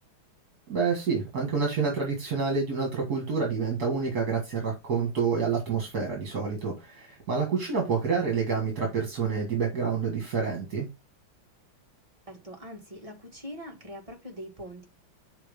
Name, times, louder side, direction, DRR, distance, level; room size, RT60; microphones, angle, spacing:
voice 1, 0.7-10.9, right 5 dB, 50° right, 2.3 m, -28 dB
voice 2, 12.3-14.9, equal, 15° right, 1.7 m, -42 dB
6.1 x 4.4 x 5.2 m
omnidirectional pair, 2.3 m